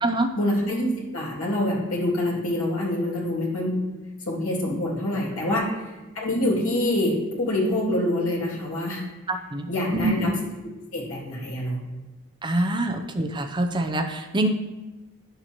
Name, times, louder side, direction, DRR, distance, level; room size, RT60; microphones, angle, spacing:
voice 1, 0.4-3.8 4.3-9.0 9.7-10.4 10.9-11.8 12.5-12.8, left 1 dB, 80° left, -4 dB, 2.4 m, -26 dB
voice 2, 9.3-10.3 12.4-14.5, right 1 dB, 20° right, 4 dB, 0.6 m, -25 dB
10.5 x 6.6 x 3.0 m, 1.1 s
head